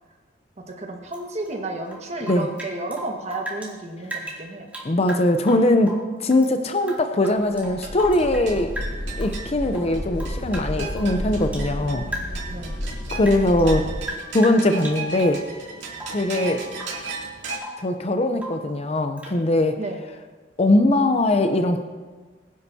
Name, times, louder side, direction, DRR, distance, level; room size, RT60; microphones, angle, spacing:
voice 1, 0.7-4.7 11.7-12.8 16.3-16.9 19.8-20.0, right 2 dB, 40° right, 2 dB, 1.5 m, -33 dB
Rain / Drip, 1.1-3.7 4.0-6.5 6.8-8.5 8.8-9.4 9.7-11.7 12.1-12.5 12.9-15.4 15.9-16.3 16.7-17.1 17.3-17.9 18.4-18.7 19.2-19.4, right 1 dB, 10° right, 2.5 m, -37 dB
voice 2, 4.8-8.7 9.2-12.0 13.1-13.8 14.3-15.4 16.1-16.6 17.8-19.8 20.6-21.8, left 1 dB, 35° left, 7 dB, 0.6 m, -21 dB
sound 1, 7.5-14.1, equal, 80° left, 1.5 m, -31 dB
sound 2, 7.6-17.6, right 3 dB, 65° right, 2.7 m, -37 dB
21.5 x 9.8 x 2.8 m, 1.4 s
head